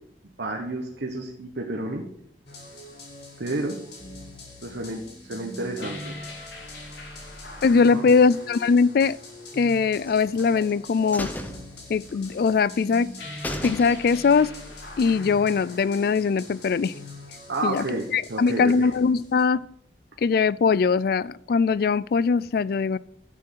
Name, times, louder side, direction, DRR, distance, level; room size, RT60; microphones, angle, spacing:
voice 1, 0.4-2.0 3.4-3.8 4.6-6.5 7.9-8.1 17.5-18.9, right 2 dB, 75° right, 1 dB, 1.2 m, -31 dB
sound 1, 2.5-19.5, left 2 dB, 75° left, 2.8 m, -42 dB
voice 2, 7.6-9.2 9.5-11.3 11.9-13.1 13.6-14.5 15.0-16.9 17.6-17.8 18.1-19.6 20.2-23.0, left 5 dB, 55° left, 20 dB, 0.3 m, -21 dB
sound 2, 10.0-10.7 11.1-12.4 12.7-12.8 13.1-13.2 13.4-14.3 14.7-14.8, left 1 dB, 10° left, 0.8 m, -35 dB
11.5 x 6.5 x 5.6 m, 0.72 s
head